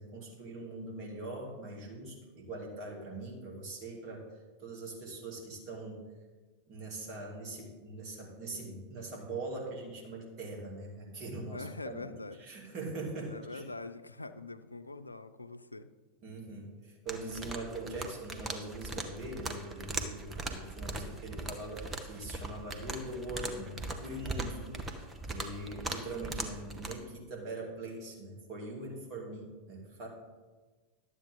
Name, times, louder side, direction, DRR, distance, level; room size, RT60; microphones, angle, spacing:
voice 1, 0.0-4.3 4.6-6.0 6.7-12.0 12.4-13.6 16.2-30.1, right 2 dB, 40° right, -1 dB, 2.6 m, -42 dB
voice 2, 11.5-12.4 13.3-15.9, left 3 dB, 85° left, 11 dB, 0.4 m, -44 dB
sound 1, 17.1-26.9, right 2 dB, 15° right, 1.0 m, -40 dB
12.0 x 8.2 x 3.6 m, 1.3 s
figure-of-eight pair, 90°, 0 cm